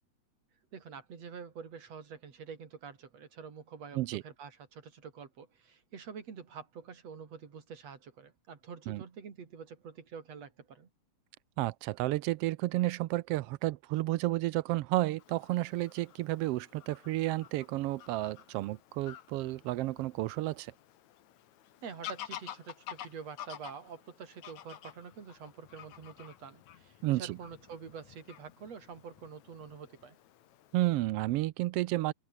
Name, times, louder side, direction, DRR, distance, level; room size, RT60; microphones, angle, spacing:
voice 1, 0.7-10.9 21.8-30.2, right 6 dB, 60° right, 4.0 m, -47 dB
voice 2, 11.6-20.7 27.0-27.4 30.7-32.1, right 17 dB, 80° right, 1.4 m, -31 dB
Fowl / Bird vocalization bird call bird song, 15.2-30.9, left 11 dB, 75° left, 2.8 m, -51 dB
omnidirectional pair, 3.3 m